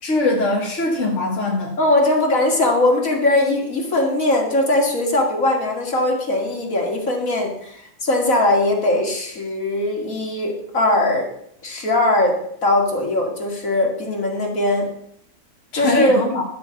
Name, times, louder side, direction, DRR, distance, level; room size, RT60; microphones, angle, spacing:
voice 1, 0.0-1.8 15.7-16.4, left 2 dB, 60° left, -2 dB, 2.1 m, -21 dB
voice 2, 1.8-11.3 11.6-12.3 12.6-14.9 15.7-16.2, left 1 dB, 80° left, 1 dB, 2.8 m, -20 dB
12.5 x 6.3 x 7.1 m, 0.70 s
omnidirectional pair, 1.4 m